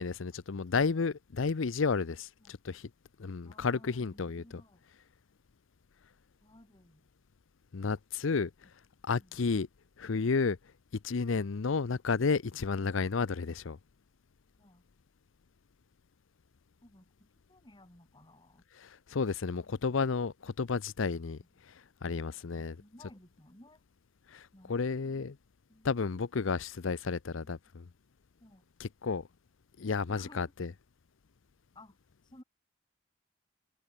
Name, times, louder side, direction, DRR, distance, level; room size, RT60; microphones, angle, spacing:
voice 1, 0.0-2.9 3.2-4.4 7.7-8.5 9.0-9.7 10.0-10.6 11.0-13.8 18.8-21.4 21.6-22.8 24.3-25.3 25.8-27.8 28.8-29.2 29.8-30.7, left 4 dB, 75° left, 0.6 m, -32 dB
voice 2, 3.4-4.8 6.4-7.1 9.2-9.5 14.6-14.8 16.8-18.6 22.5-23.8 24.5-24.8 25.7-26.5 26.9-27.0 28.4-28.7 30.1-30.5 31.8-32.0 32.2-32.4, left 1 dB, 25° left, 3.6 m, -57 dB
head